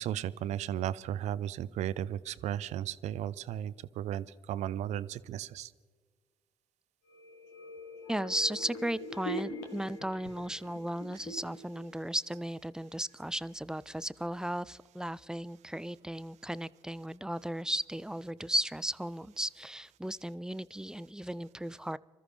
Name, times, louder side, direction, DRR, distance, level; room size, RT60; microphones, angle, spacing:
voice 1, 0.0-5.7, right 11 dB, 65° right, 17 dB, 0.5 m, -35 dB
sound 1, 7.1-12.8 13.1-13.2, left 1 dB, 75° left, 1.3 m, -44 dB
voice 2, 8.1-22.0, right 1 dB, 5° right, 19 dB, 0.4 m, -35 dB
25.5 x 13.5 x 3.3 m, 1.5 s
hypercardioid pair, 45°, 13 cm